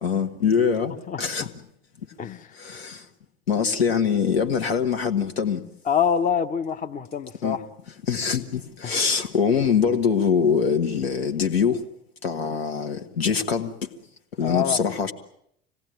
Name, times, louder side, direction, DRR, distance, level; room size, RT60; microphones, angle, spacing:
voice 1, 0.0-0.9 1.2-1.5 2.6-3.1 3.5-5.6 7.4-7.6 8.0-11.9 12.2-13.9 14.4-15.1, left 6 dB, 75° left, 1.9 m, -23 dB
voice 2, 1.1-1.5 2.2-2.5 5.9-7.6 8.8-8.9 14.4-14.8, left 7 dB, 25° left, 1.0 m, -26 dB
25.5 x 18.0 x 9.2 m
figure-of-eight pair, 70°, 31 cm